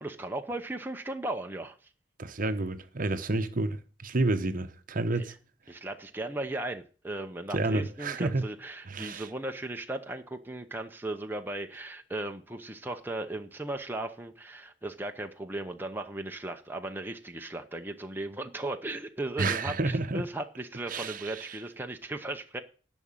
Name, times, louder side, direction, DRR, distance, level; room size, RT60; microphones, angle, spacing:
voice 1, 0.0-1.8 5.1-5.3 5.7-22.6, right 2 dB, 10° right, 0.8 m, -37 dB
voice 2, 2.2-5.3 7.5-8.4 8.9-9.3 19.4-20.2 20.9-21.6, right 2 dB, 45° right, 0.9 m, -30 dB
11.0 x 6.2 x 8.9 m
head